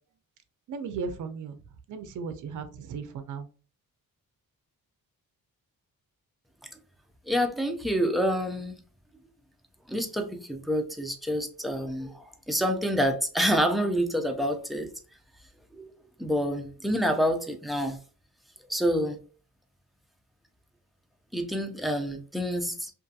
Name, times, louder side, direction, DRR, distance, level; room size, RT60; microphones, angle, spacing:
voice 1, 0.7-1.6 1.9-3.5, right 5 dB, 60° right, 0.5 m, -36 dB
voice 2, 7.3-8.8 9.9-14.9 15.7-15.9 16.2-18.0 18.7-19.2 21.3-22.9, equal, ahead, 0.3 m, -27 dB
2.6 x 2.5 x 2.3 m
wide cardioid pair, 115°, 35 cm